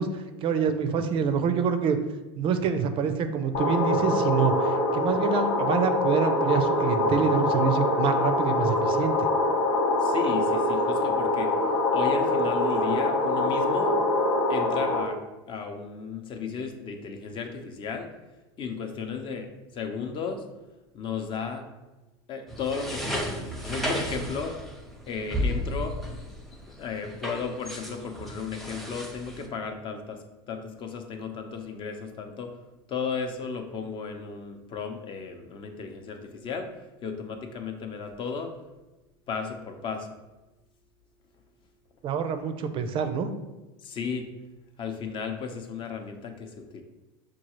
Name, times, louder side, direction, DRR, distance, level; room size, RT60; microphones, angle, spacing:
voice 1, 0.0-2.0 2.4-9.3 42.0-43.3, right 6 dB, 45° right, 8 dB, 0.4 m, -26 dB
sound 1, 3.5-15.0, left 2 dB, 85° left, 0.9 m, -24 dB
voice 2, 10.0-11.5 11.9-14.0 14.5-15.2 15.5-18.1 18.6-20.4 20.9-21.7 22.3-24.6 25.1-26.0 26.8-32.5 32.9-36.7 37.0-38.5 39.3-40.1 43.8-44.3 44.8-46.8, left 5 dB, 40° left, 5 dB, 0.7 m, -34 dB
sound 2, 22.5-29.5, equal, ahead, 0.7 m, -34 dB
6.1 x 2.3 x 3.0 m, 1.1 s
supercardioid pair, 105°, 13 cm